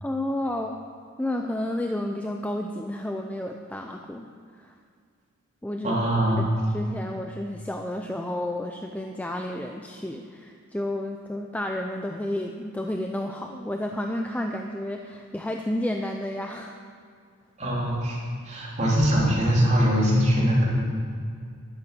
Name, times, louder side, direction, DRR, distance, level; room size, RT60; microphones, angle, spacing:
voice 1, 0.0-0.9 1.2-4.7 5.6-6.0 6.4-16.8, left 1 dB, 5° left, 3 dB, 0.5 m, -31 dB
voice 2, 5.8-6.5 17.6-18.2 18.4-20.7, equal, 35° right, -5 dB, 3.3 m, -22 dB
12.0 x 10.5 x 6.0 m, 2.2 s
head